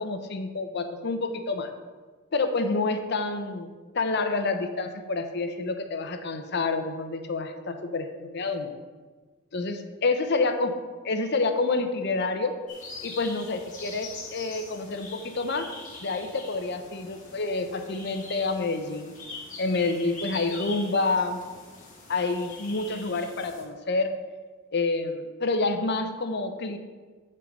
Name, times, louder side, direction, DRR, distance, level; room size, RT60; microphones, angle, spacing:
voice 1, 0.0-1.7 2.3-3.7 3.9-8.7 9.5-10.7 11.0-12.6 13.0-15.7 16.0-19.1 19.6-21.4 22.1-24.1 24.7-26.8, left 3 dB, 55° left, 7 dB, 0.7 m, -28 dB
sound 1, 12.7-23.6, left 3 dB, 40° left, 2.0 m, -43 dB
7.6 x 5.4 x 5.4 m, 1.4 s
head